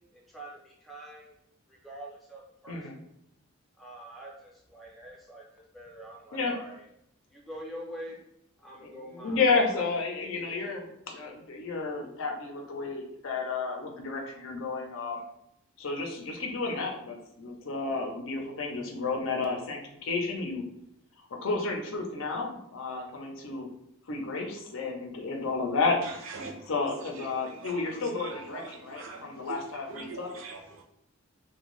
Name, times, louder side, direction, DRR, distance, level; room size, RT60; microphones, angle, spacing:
voice 1, 0.1-1.4 1.7-3.0 3.8-6.8 7.3-8.2 8.6-9.8 10.2-10.7, right 1 dB, ahead, -3 dB, 0.6 m, -45 dB
voice 2, 9.2-15.2 15.8-20.6 21.4-23.7 24.1-26.0 26.7-30.3, left 4 dB, 65° left, 2 dB, 0.5 m, -31 dB
voice 3, 26.0-26.7 27.0-30.8, right 4 dB, 60° right, 2 dB, 0.5 m, -43 dB
2.5 x 2.2 x 3.0 m, 0.78 s
head